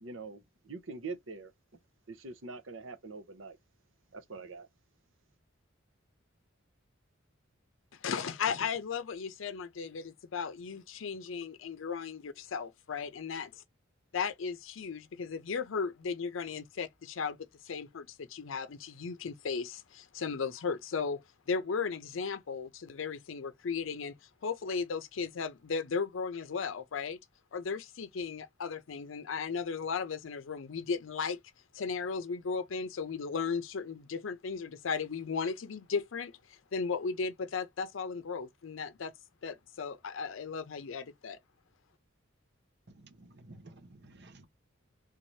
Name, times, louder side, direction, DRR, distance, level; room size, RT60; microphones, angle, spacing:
voice 1, 0.0-1.5 2.1-3.6 4.1-4.7, right 4 dB, 80° right, 0.9 m, -44 dB
voice 2, 7.9-13.5 14.1-21.2 21.5-27.2 27.5-31.4 31.7-39.1 39.4-41.4, left 5 dB, 80° left, 0.5 m, -36 dB
voice 3, 42.9-44.5, right 2 dB, 60° right, 1.0 m, -54 dB
3.8 x 2.7 x 3.1 m
head